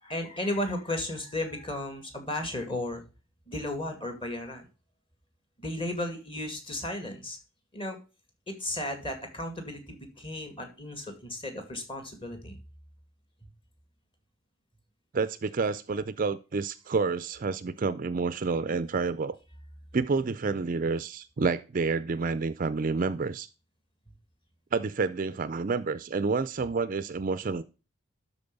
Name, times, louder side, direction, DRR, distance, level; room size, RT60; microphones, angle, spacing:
voice 1, 0.0-3.0 3.5-4.7 5.6-7.4 7.7-8.0 8.5-12.6, left 1 dB, 25° left, 5 dB, 2.1 m, -34 dB
voice 2, 15.1-19.4 19.9-23.5 24.7-27.6, right 4 dB, 40° right, 15 dB, 0.4 m, -29 dB
12.5 x 4.3 x 5.3 m, 0.32 s
head